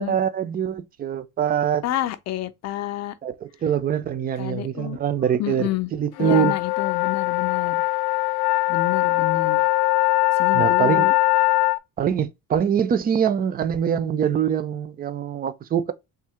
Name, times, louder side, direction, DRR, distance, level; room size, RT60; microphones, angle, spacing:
voice 1, 0.0-1.8 3.2-6.5 10.5-11.1 12.0-15.9, right 9 dB, 25° right, 0.4 m, -24 dB
voice 2, 1.8-3.2 4.4-5.0 5.4-5.9 6.2-7.8 8.7-9.6 10.3-11.1, left 13 dB, 45° left, 0.5 m, -29 dB
sound 1, 6.2-11.8, left 19 dB, 90° left, 0.7 m, -21 dB
3.6 x 2.7 x 4.3 m
cardioid pair, 170°, 37 cm